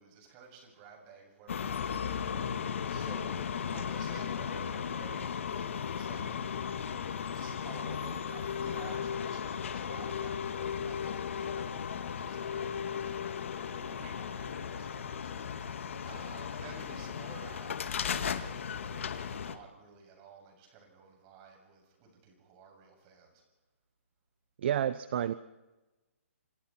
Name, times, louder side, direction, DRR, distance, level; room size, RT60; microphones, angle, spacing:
voice 1, 0.0-6.6 7.3-13.3 13.7-23.4, right 6 dB, 25° right, 2 dB, 7.2 m, -53 dB
sound 1, 1.5-19.6, left 7 dB, 60° left, 2.0 m, -36 dB
voice 2, 24.6-25.3, right 10 dB, 50° right, 15 dB, 0.8 m, -30 dB
28.5 x 25.5 x 4.5 m, 1.1 s
hypercardioid pair, 155°, 8 cm